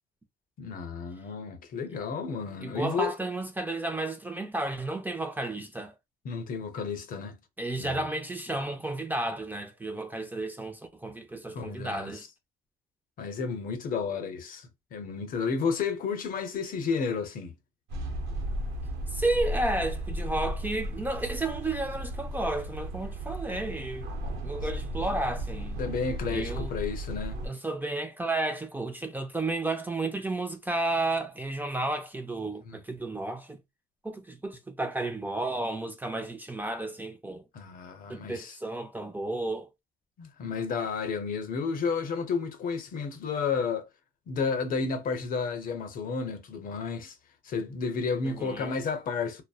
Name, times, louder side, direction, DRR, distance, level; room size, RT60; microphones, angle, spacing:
voice 1, 0.6-3.2 6.2-7.4 7.8-8.0 11.5-12.2 13.2-17.5 25.8-27.4 32.7-32.8 37.5-38.5 40.2-43.9 44.3-47.1 47.4-49.4, left 5 dB, 55° left, 0.7 m, -32 dB
voice 2, 2.6-5.9 7.6-12.2 19.1-24.1 24.4-25.8 26.3-26.7 27.4-33.6 34.0-37.4 38.1-39.7 48.2-48.8, right 2 dB, 10° right, 0.4 m, -32 dB
sound 1, 17.9-27.5, right 1 dB, 85° right, 0.7 m, -35 dB
2.6 x 2.0 x 2.3 m
cardioid pair, 110°, 17 cm